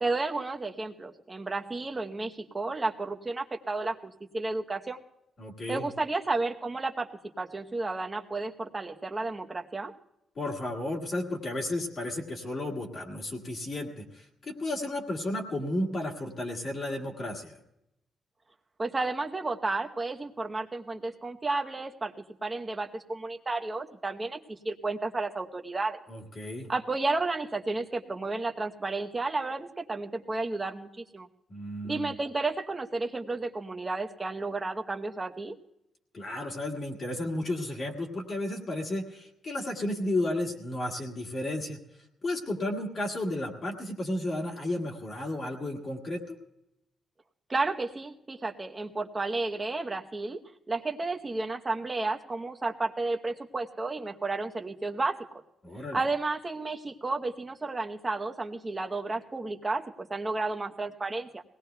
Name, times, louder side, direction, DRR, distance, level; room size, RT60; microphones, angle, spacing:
voice 1, 0.0-5.0 5.7-7.1 7.4-9.9 18.8-22.1 22.4-26.0 26.7-31.3 31.8-35.5 47.5-50.4 50.7-55.2 55.9-61.4, right 3 dB, 15° right, 4 dB, 0.8 m, -32 dB
voice 2, 5.4-5.9 10.4-17.6 26.1-26.7 31.5-32.1 36.1-41.8 42.2-46.4 55.6-56.0, left 1 dB, 35° left, 1 dB, 1.8 m, -33 dB
23.0 x 18.0 x 2.2 m, 0.84 s
wide cardioid pair, 175°, 0 cm